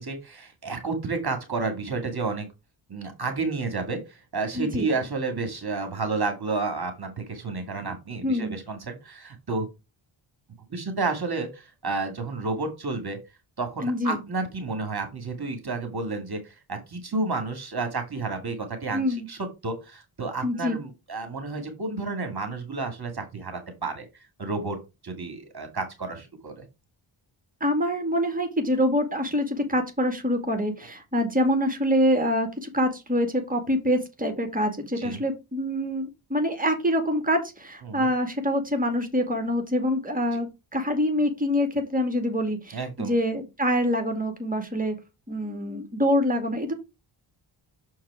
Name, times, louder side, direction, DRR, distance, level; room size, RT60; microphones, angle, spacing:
voice 1, 0.0-2.5 2.9-9.7 10.7-13.2 13.6-24.1 24.4-24.8 25.0-26.6 35.0-35.2 37.8-38.1 42.7-43.2, right 3 dB, 50° right, 6 dB, 2.1 m, -31 dB
voice 2, 4.5-4.9 8.2-8.6 13.8-14.2 18.9-19.3 20.4-20.8 27.6-45.0 45.3-46.7, equal, 15° right, 5 dB, 2.2 m, -25 dB
6.4 x 4.7 x 4.8 m, 0.25 s
cardioid pair, 55°, 50 cm